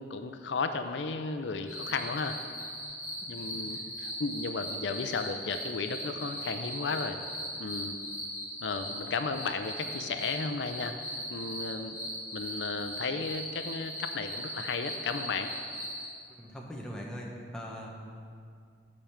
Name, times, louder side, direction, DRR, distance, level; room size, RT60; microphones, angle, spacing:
voice 1, 0.0-2.4 3.3-7.2 7.6-8.0 8.6-10.9 11.3-12.0 12.3-15.5, left 4 dB, 80° left, 8 dB, 0.5 m, -34 dB
sound 1, 1.7-16.1, equal, 20° left, 2.2 m, -39 dB
voice 2, 16.3-18.0, equal, 5° left, -2 dB, 1.1 m, -41 dB
8.7 x 5.1 x 7.2 m, 2.3 s
head